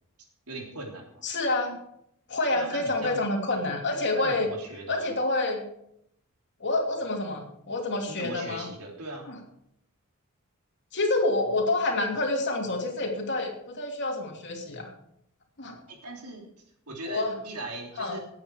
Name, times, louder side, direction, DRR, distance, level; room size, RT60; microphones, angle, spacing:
voice 1, 0.5-1.3 2.5-3.2 4.1-5.1 8.1-9.3 15.9-16.4 16.9-18.2, right 2 dB, 85° right, 1 dB, 3.5 m, -39 dB
voice 2, 1.2-1.8 2.3-4.5 4.9-5.6 6.6-8.7 9.3-9.4 10.9-14.9 15.6-15.8 17.1-17.4 18.0-18.2, left 2 dB, 55° left, 2 dB, 3.0 m, -28 dB
18.5 x 8.8 x 4.8 m, 0.74 s
head